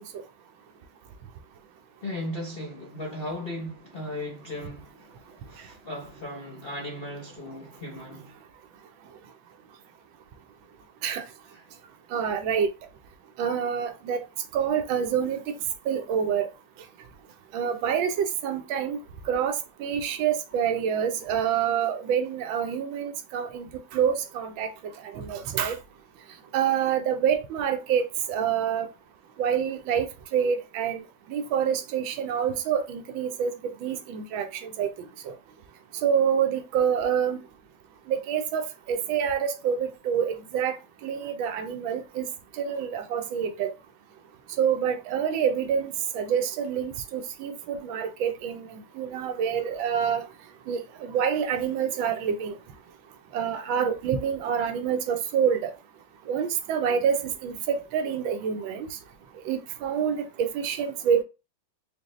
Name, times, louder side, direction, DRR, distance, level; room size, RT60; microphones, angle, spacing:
voice 1, 2.0-8.3 11.5-11.6, left 1 dB, 70° left, 0.5 m, -37 dB
voice 2, 12.1-12.7 13.4-14.2 14.5-15.5 15.9-16.5 17.5-19.0 19.3-24.7 25.1-25.8 26.5-28.9 29.4-31.0 31.3-33.5 33.8-34.9 35.3-35.4 36.0-37.4 38.1-40.8 41.0-42.3 42.6-43.7 44.6-50.3 50.7-52.5 53.3-55.7 56.3-58.9 59.5-61.2, right 8 dB, 80° right, 1.4 m, -27 dB
5.0 x 2.1 x 3.1 m
omnidirectional pair, 2.2 m